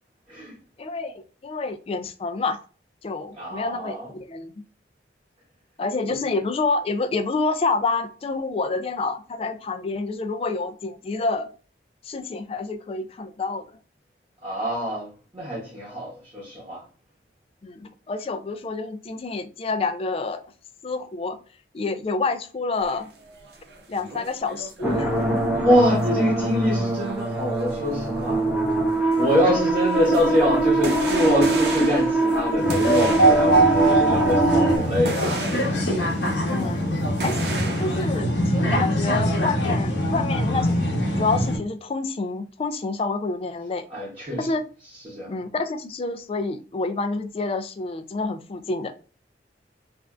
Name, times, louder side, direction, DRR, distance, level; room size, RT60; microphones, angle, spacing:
voice 1, 0.8-2.6 3.0-4.5 5.8-11.5 12.0-13.7 17.6-20.4 20.8-21.4 21.7-23.1 23.9-25.7 26.1-26.2 36.5-36.8 37.2-43.9 44.4-44.6 45.3-48.9, left 3 dB, 35° left, 0.3 m, -28 dB
voice 2, 3.4-4.1 14.4-15.1 15.3-16.8 25.6-28.4 29.2-35.2 43.9-44.4 45.0-45.3, equal, 30° right, 0.9 m, -24 dB
sound 1, 22.8-38.2, right 3 dB, 65° right, 0.7 m, -37 dB
sound 2, 24.8-34.8, right 2 dB, 5° right, 0.6 m, -23 dB
sound 3, 32.6-41.6, right 1 dB, 80° left, 0.9 m, -22 dB
3.3 x 2.4 x 2.3 m
head